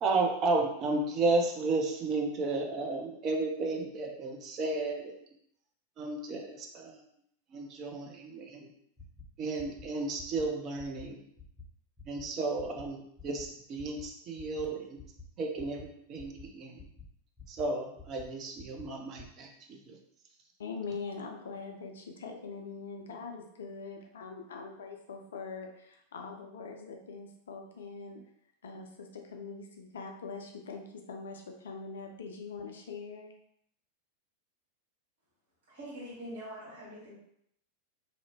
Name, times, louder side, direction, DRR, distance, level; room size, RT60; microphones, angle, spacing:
voice 1, 0.0-5.2 6.0-7.0 7.5-8.7 9.4-11.2 12.1-15.0 15.4-16.9 17.5-20.0, right 3 dB, 35° right, 1 dB, 0.5 m, -33 dB
sound 1, 9.0-9.2 9.6-9.9 10.2-10.4 10.8-11.1 11.4-11.6 12.0-12.2 12.6-12.9 13.2-13.4 13.8-14.0 14.4-14.6 15.0-15.2 15.6-15.8 16.2-16.5 16.8-17.1 17.4-17.6 18.0-18.3 18.6-18.9 19.2-19.3, left 6 dB, 15° left, 0.6 m, -49 dB
voice 2, 20.6-28.2 28.6-33.3, left 4 dB, 65° left, 3 dB, 0.4 m, -43 dB
voice 3, 35.7-37.1, equal, 60° right, -8 dB, 1.3 m, -44 dB
2.6 x 2.0 x 2.9 m, 0.72 s
figure-of-eight pair, 90°, 0 cm